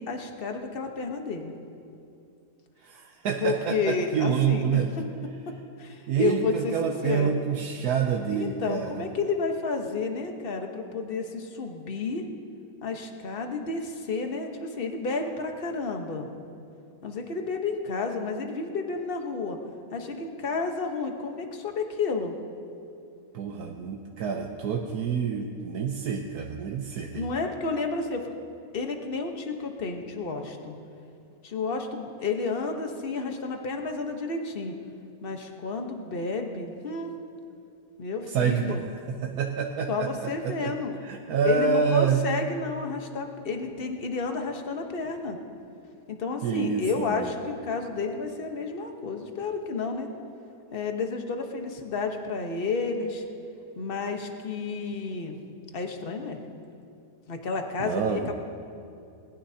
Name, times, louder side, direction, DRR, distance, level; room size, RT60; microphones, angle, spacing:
voice 1, 0.0-1.5 3.4-4.8 5.8-7.4 8.3-12.2 12.8-16.3 17.0-19.6 19.9-22.4 27.1-28.3 28.7-30.7 31.4-34.8 35.2-37.1 38.0-38.8 39.9-41.0 41.4-45.4 46.1-50.1 50.7-53.2 53.7-55.4 55.7-56.4 57.3-58.3, left 4 dB, 40° left, 4 dB, 1.2 m, -31 dB
voice 2, 2.8-4.9 6.1-9.1 23.3-27.3 38.3-38.8 39.1-40.7 41.0-42.3 46.4-47.3 57.8-58.3, right 6 dB, 85° right, 2 dB, 1.3 m, -27 dB
20.0 x 19.5 x 2.8 m, 2.6 s
omnidirectional pair, 1.6 m